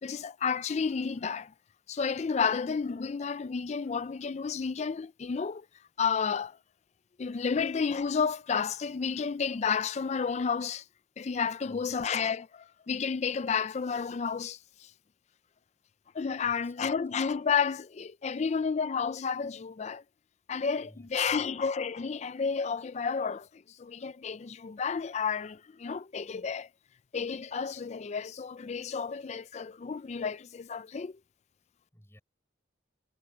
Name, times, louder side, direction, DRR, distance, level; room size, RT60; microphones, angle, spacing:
voice 1, 0.0-1.5 1.9-5.7 6.0-6.6 7.2-10.8 11.2-14.9 16.1-20.0 20.5-26.7 27.1-31.1, left 6 dB, 35° left, 0.4 m, -31 dB
voice 2, 11.7-12.0 16.4-16.9 20.8-21.5 31.6-32.2, equal, 15° left, 5.3 m, -57 dB
head